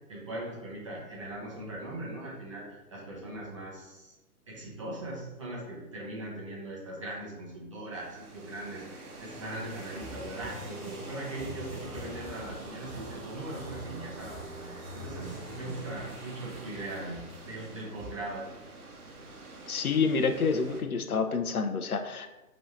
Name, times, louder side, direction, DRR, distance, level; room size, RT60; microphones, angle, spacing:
voice 1, 0.1-4.1 4.5-15.3 15.5-17.2 17.4-18.4, right 1 dB, 20° right, -4 dB, 0.7 m, -40 dB
sound 1, 7.9-20.8, right 2 dB, 70° right, 1.0 m, -46 dB
sound 2, 9.7-18.1, equal, 10° left, 1.3 m, -46 dB
voice 2, 19.7-22.3, left 5 dB, 70° left, 7 dB, 0.6 m, -28 dB
5.3 x 3.0 x 3.0 m, 1.0 s
figure-of-eight pair, 140°, 46 cm